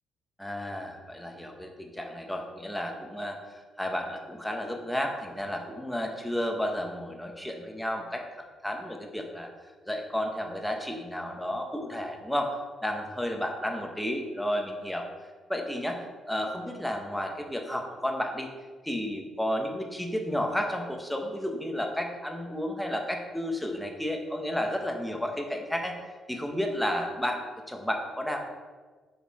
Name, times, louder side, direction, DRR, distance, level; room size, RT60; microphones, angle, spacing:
voice 1, 0.4-3.4 3.8-9.5 9.9-12.6 12.8-15.1 15.5-18.5 18.8-26.0 26.3-27.4 27.7-28.5, equal, 5° left, 2 dB, 0.9 m, -32 dB
6.8 x 4.8 x 4.7 m, 1.4 s
cardioid pair, 155°, 0 cm